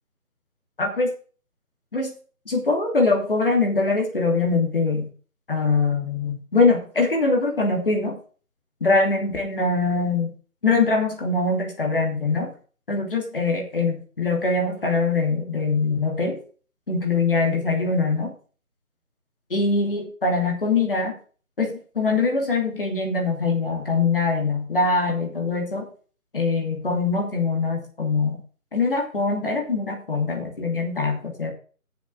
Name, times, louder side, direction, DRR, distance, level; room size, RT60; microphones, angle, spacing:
voice 1, 0.8-1.1 1.9-2.1 2.5-5.1 5.5-8.2 8.8-10.3 10.6-12.5 12.9-16.4 16.9-18.3 19.5-21.2 21.6-25.8 26.3-28.4 28.7-31.5, left 3 dB, 40° left, 1 dB, 2.8 m, -23 dB
7.2 x 7.0 x 7.8 m, 0.40 s
figure-of-eight pair, 170°, 43 cm